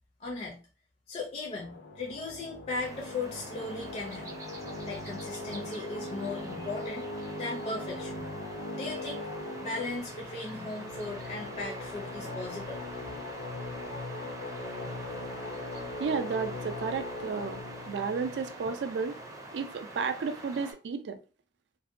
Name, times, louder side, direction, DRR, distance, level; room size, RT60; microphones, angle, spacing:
voice 1, 0.2-0.6 1.1-4.3 4.8-7.1 7.4-8.2 8.7-9.3 9.6-12.8, left 3 dB, 40° left, 0.4 m, -37 dB
sound 1, 1.5-19.6, left 2 dB, 85° left, 0.6 m, -40 dB
sound 2, 2.8-20.7, right 2 dB, 20° right, 0.5 m, -45 dB
voice 2, 16.0-17.6 17.9-19.2 19.5-21.2, right 5 dB, 75° right, 0.4 m, -32 dB
2.6 x 2.1 x 2.4 m
head